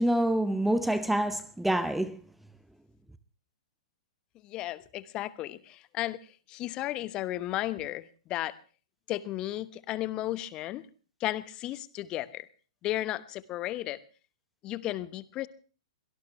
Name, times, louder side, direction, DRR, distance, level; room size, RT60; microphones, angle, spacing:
voice 1, 0.0-2.2, right 1 dB, 5° right, 0.7 m, -26 dB
voice 2, 4.4-6.2 6.5-8.5 9.1-10.8 11.2-12.5 12.8-14.0 14.6-15.5, left 15 dB, 25° left, 1.1 m, -34 dB
24.0 x 18.0 x 3.2 m
figure-of-eight pair, 110°, 3 cm